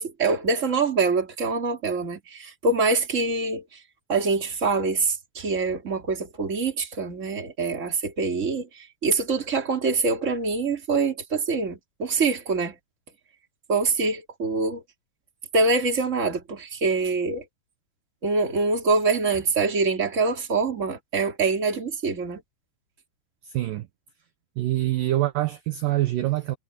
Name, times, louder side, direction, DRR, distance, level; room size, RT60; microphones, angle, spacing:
voice 1, 0.0-3.6 4.1-12.7 13.7-14.8 15.5-17.4 18.2-22.4, right 4 dB, 20° right, 2.6 m, -25 dB
voice 2, 23.4-23.9 24.6-26.6, right 15 dB, 70° right, 2.2 m, -25 dB
omnidirectional pair, 5.0 m